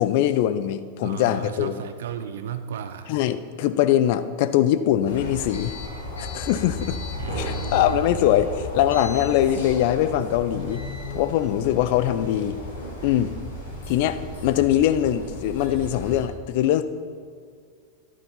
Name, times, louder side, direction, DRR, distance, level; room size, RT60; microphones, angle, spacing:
voice 1, 0.0-1.8 3.1-5.7 6.2-7.0 7.4-10.8 11.1-12.6 13.0-13.3 13.9-16.8, left 11 dB, 50° left, 12 dB, 0.6 m, -22 dB
voice 2, 1.0-3.1 7.2-8.4, right 7 dB, 60° right, 10 dB, 0.5 m, -34 dB
sound 1, 5.0-16.2, left 2 dB, 70° left, 3.3 m, -35 dB
11.5 x 9.1 x 5.6 m, 2.2 s
figure-of-eight pair, 90°, 0 cm